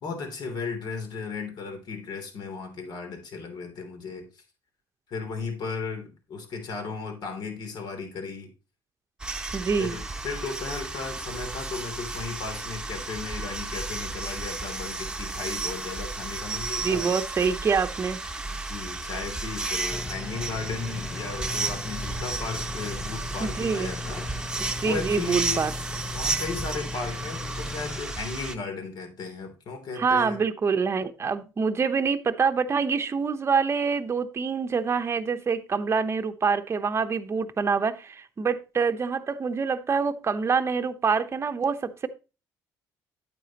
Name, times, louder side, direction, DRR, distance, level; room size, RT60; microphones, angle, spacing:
voice 1, 0.0-4.4 5.1-8.5 9.8-17.1 18.4-24.3 24.8-25.7 26.1-30.4, left 4 dB, 60° left, 3.2 m, -35 dB
sound 1, 9.2-28.5, right 3 dB, 10° right, 1.1 m, -33 dB
voice 2, 9.5-10.0 16.8-18.2 23.4-23.9 24.6-25.7 30.0-42.1, right 5 dB, 35° right, 0.9 m, -26 dB
sound 2, 19.9-28.0, left 4 dB, 20° left, 0.6 m, -38 dB
9.1 x 8.6 x 3.0 m
supercardioid pair, 80°, 8 cm